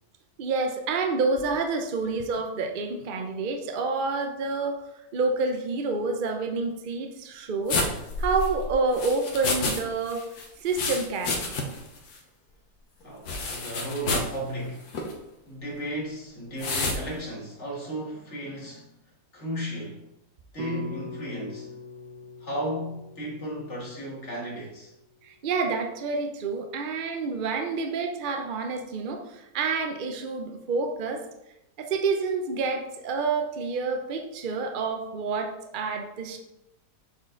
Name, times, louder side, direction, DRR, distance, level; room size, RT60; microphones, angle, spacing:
voice 1, 0.4-4.8 5.1-7.8 8.2-10.2 10.6-11.5 25.2-31.2 31.8-36.4, right 4 dB, 60° right, 4 dB, 0.5 m, -28 dB
sound 1, 7.7-9.8 10.1-11.9 12.1-12.2 13.3-14.3 14.9-15.1 16.6-17.0, left 3 dB, 70° left, 1.4 m, -29 dB
voice 2, 13.0-15.1 15.5-19.0 19.3-20.0 20.5-21.7 22.4-24.9, right 1 dB, 45° left, -3 dB, 2.2 m, -34 dB
sound 2, 20.6-24.9, left 3 dB, 80° right, 1.4 m, -43 dB
7.1 x 4.1 x 3.8 m, 0.88 s
omnidirectional pair, 1.8 m